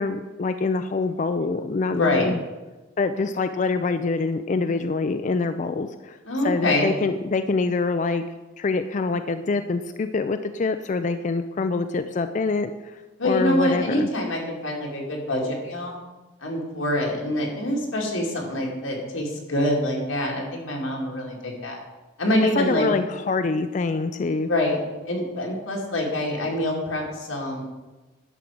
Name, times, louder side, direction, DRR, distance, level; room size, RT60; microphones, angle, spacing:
voice 1, 0.0-2.4 3.0-6.2 6.4-8.2 8.6-14.1 22.6-24.5, left 3 dB, 35° left, 9 dB, 0.3 m, -25 dB
voice 2, 1.9-2.3 6.2-6.9 13.2-16.0 16.4-21.8 22.2-22.9 24.4-24.8 25.1-27.6, left 1 dB, 90° left, -1 dB, 2.6 m, -25 dB
11.0 x 4.6 x 7.6 m, 1.2 s
head